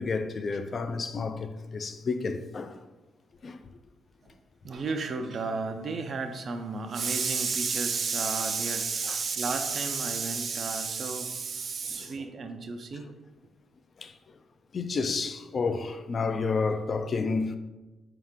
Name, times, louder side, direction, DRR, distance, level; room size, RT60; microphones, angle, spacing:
voice 1, 0.0-2.8 3.4-3.6 9.1-9.2 11.9-12.1 14.0-14.1 14.7-17.6, left 4 dB, 50° left, 0.4 m, -30 dB
voice 2, 4.6-13.1, right 4 dB, 55° right, 0.5 m, -31 dB
4.7 x 2.8 x 3.6 m
hypercardioid pair, 45°, 0 cm